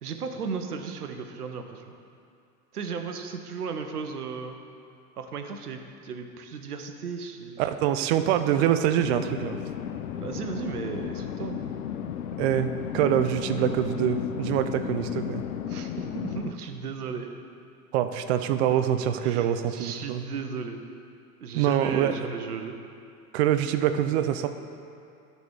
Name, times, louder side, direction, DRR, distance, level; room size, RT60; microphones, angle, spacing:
voice 1, 0.0-1.9 2.7-4.6 5.2-7.6 10.1-11.6 15.7-17.3 19.2-20.8 21.4-22.8, right 5 dB, 75° right, 6 dB, 0.8 m, -35 dB
voice 2, 7.6-9.6 12.4-15.4 17.9-20.2 21.5-22.2 23.3-24.5, right 10 dB, 45° right, 10 dB, 0.5 m, -25 dB
sound 1, 9.0-16.5, left 9 dB, 75° left, 0.6 m, -34 dB
12.0 x 4.1 x 4.7 m, 2.5 s
figure-of-eight pair, 75°, 46 cm